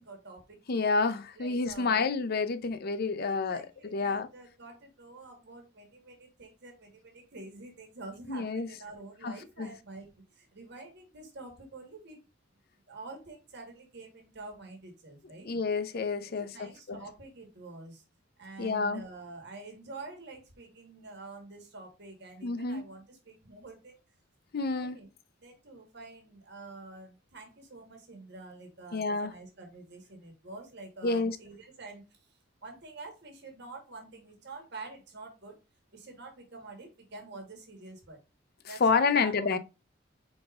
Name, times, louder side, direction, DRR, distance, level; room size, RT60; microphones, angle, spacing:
voice 1, 0.0-0.8 1.4-2.4 3.2-12.2 12.9-15.6 16.3-18.0 18.4-23.9 24.7-25.1 25.4-35.5 35.9-38.2 38.7-39.5, right 3 dB, 60° right, 1.4 m, -47 dB
voice 2, 0.7-3.6 3.9-4.3 8.3-8.7 9.2-9.3 9.6-9.7 15.5-17.0 18.6-19.0 22.4-22.8 24.5-25.0 28.9-29.3 31.0-31.4 38.8-39.6, left 4 dB, 55° left, 0.5 m, -29 dB
4.8 x 4.0 x 2.4 m
head